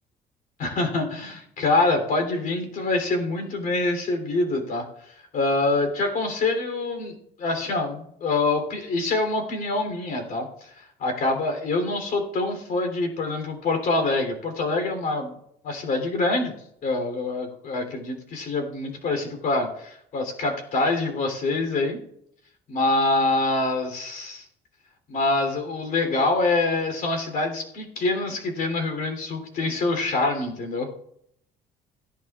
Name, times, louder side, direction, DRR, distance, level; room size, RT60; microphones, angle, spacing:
voice 1, 0.6-4.8 5.3-10.5 11.0-15.4 15.6-16.5 16.8-22.0 22.7-24.4 25.1-30.9, left 2 dB, 60° left, 4 dB, 3.3 m, -25 dB
17.0 x 11.0 x 2.4 m, 0.71 s
cardioid pair, 110°, 17 cm